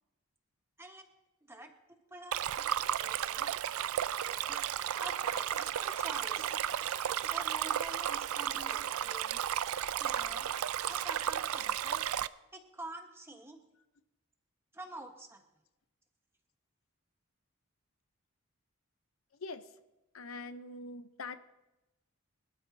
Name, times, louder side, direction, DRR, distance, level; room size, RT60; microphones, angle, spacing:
voice 1, 1.4-3.5 4.5-4.7 5.0-6.5 7.3-9.4 9.9-10.5 10.9-12.0 12.5-13.6 14.7-15.4, right 2 dB, 10° right, 4 dB, 1.3 m, -47 dB
Stream, 2.3-12.3, right 10 dB, 75° right, 0.4 m, -33 dB
sound 1, 4.3-4.6 4.9-9.1, left 2 dB, 20° left, 1.1 m, -54 dB
voice 2, 20.1-21.4, left 3 dB, 70° left, 10 dB, 0.7 m, -43 dB
26.0 x 12.5 x 2.8 m, 0.99 s
head